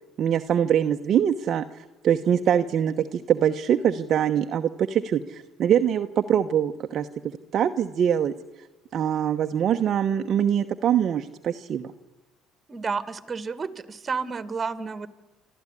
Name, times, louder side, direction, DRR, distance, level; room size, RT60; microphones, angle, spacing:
voice 1, 0.2-7.1 7.5-8.3 8.9-11.9, right 9 dB, 50° right, 6 dB, 1.1 m, -23 dB
voice 2, 12.7-15.1, right 5 dB, 30° right, 13 dB, 2.0 m, -31 dB
26.0 x 14.0 x 9.9 m, 1.1 s
supercardioid pair, 80°, 0 cm